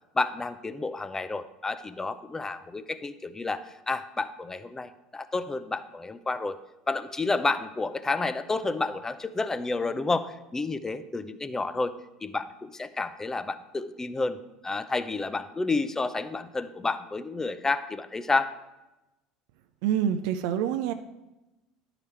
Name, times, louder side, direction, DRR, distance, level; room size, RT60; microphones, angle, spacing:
voice 1, 0.1-6.6 6.9-11.9 12.2-14.4 14.6-18.5, left 3 dB, 15° left, 12 dB, 0.6 m, -30 dB
voice 2, 19.8-20.9, right 9 dB, 70° right, 8 dB, 0.4 m, -26 dB
11.0 x 4.9 x 4.4 m, 0.98 s
hypercardioid pair, 75°, 3 cm